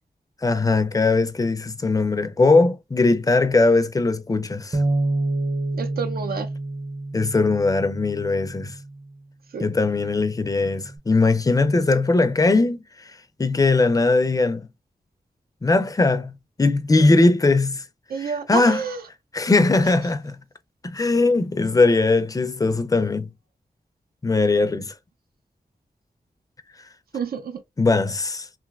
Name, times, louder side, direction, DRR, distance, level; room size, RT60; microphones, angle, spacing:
voice 1, 0.4-4.8 7.1-8.8 9.6-12.8 13.4-14.7 15.6-17.8 18.2-18.8 19.3-20.4 20.8-23.3 24.2-24.9 27.8-28.5, left 3 dB, 25° left, 0.4 m, -20 dB
Bass guitar, 4.7-9.1 9.8-11.0, right 2 dB, 30° right, 0.5 m, -28 dB
voice 2, 5.8-6.5 9.5-9.7 18.1-19.0 27.1-27.6, right 6 dB, 85° right, 0.5 m, -29 dB
3.2 x 2.5 x 2.3 m
wide cardioid pair, 70°, 15 cm